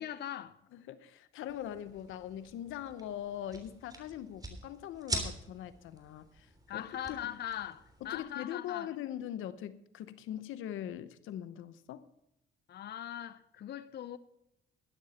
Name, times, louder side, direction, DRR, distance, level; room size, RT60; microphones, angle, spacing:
voice 1, 0.0-0.6 6.7-8.9 12.7-14.2, left 11 dB, 55° left, 0.6 m, -41 dB
voice 2, 0.7-7.4 8.0-12.0, left 11 dB, 85° left, 0.9 m, -42 dB
sound 1, 1.5-8.2, right 1 dB, 20° right, 3.3 m, -44 dB
12.5 x 11.5 x 4.2 m
cardioid pair, 90°, 20 cm